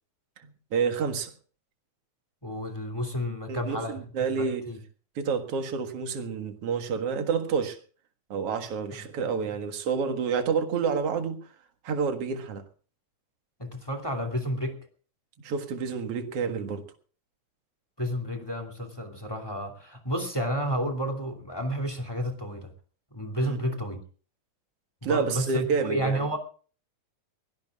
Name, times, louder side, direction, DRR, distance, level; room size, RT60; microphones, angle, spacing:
voice 1, 0.7-1.3 3.5-4.6 5.2-7.8 8.3-11.4 11.8-12.6 15.4-16.8 23.4-23.6 25.0-26.2, right 5 dB, 55° right, 2.5 m, -29 dB
voice 2, 2.4-4.0 4.4-4.8 8.9-9.0 13.6-14.8 18.0-22.7 23.1-24.0 25.0-26.4, equal, 10° left, 2.2 m, -31 dB
23.5 x 18.5 x 2.4 m
omnidirectional pair, 3.5 m